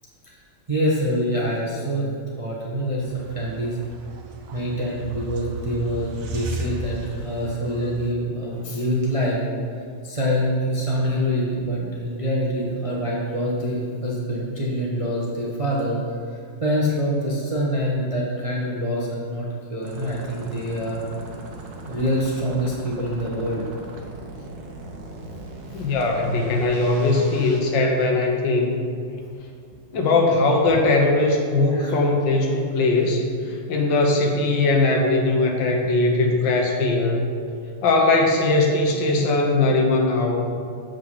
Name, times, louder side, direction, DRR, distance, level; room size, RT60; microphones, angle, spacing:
voice 1, 0.7-3.8 4.5-9.4 10.0-16.0 16.3-21.0 21.9-23.6 25.7-25.9 27.8-28.0 30.7-30.8 31.7-32.0, equal, 30° right, -4 dB, 0.6 m, -25 dB
sound 1, 3.0-8.1, right 2 dB, 90° right, 1.6 m, -35 dB
sound 2, 19.8-27.6, right 2 dB, 70° right, 1.6 m, -38 dB
voice 2, 25.7-28.8 29.9-37.3 37.8-40.4, left 2 dB, 75° left, 1 dB, 1.7 m, -20 dB
7.6 x 5.2 x 5.6 m, 2.3 s
omnidirectional pair, 2.1 m